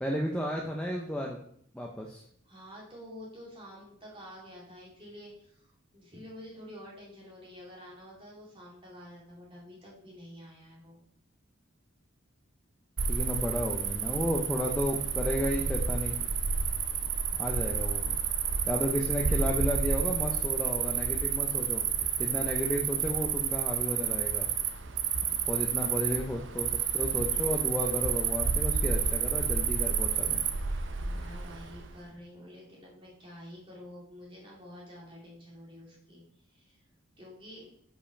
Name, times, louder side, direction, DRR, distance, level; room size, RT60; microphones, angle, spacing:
voice 1, 0.0-1.4 1.7-2.2 13.1-16.2 17.4-18.1 18.7-21.8 22.2-24.5 25.5-30.4, equal, 5° left, -1 dB, 0.5 m, -33 dB
voice 2, 2.4-11.0 26.1-26.2 31.0-36.8 37.2-37.7, equal, 25° right, -4 dB, 2.2 m, -49 dB
Cricket, 13.0-31.9, right 7 dB, 65° right, 0.6 m, -30 dB
5.2 x 4.9 x 4.9 m, 0.66 s
head